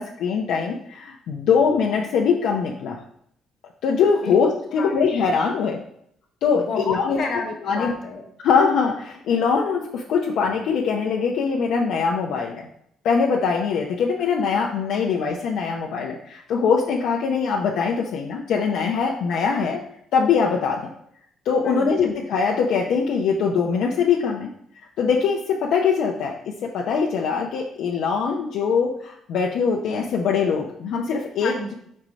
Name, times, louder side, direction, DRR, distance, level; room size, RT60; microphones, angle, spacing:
voice 1, 0.0-3.0 3.8-5.8 6.4-7.2 7.7-7.9 8.4-12.6 13.0-19.8 20.1-20.8 21.4-24.5 25.0-26.3 26.6-31.5, left 5 dB, 75° left, -1 dB, 0.7 m, -22 dB
voice 2, 6.5-8.3 21.6-22.1 31.4-31.7, left 4 dB, 55° left, 2 dB, 1.4 m, -30 dB
4.8 x 4.3 x 5.1 m, 0.70 s
cardioid pair, 105°, 0 cm